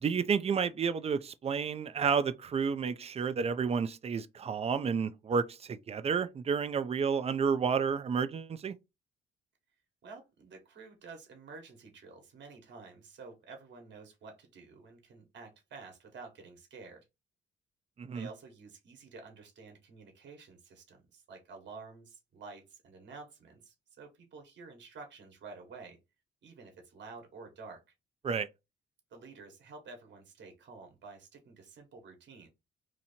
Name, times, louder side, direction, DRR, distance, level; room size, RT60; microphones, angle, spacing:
voice 1, 0.0-8.7 18.0-18.3 28.2-28.5, right 6 dB, 30° right, 0.4 m, -31 dB
voice 2, 10.0-17.0 18.1-26.0 26.4-27.8 29.1-32.5, right 4 dB, 65° right, 1.3 m, -50 dB
2.9 x 2.6 x 4.2 m
cardioid pair, 90°, 20 cm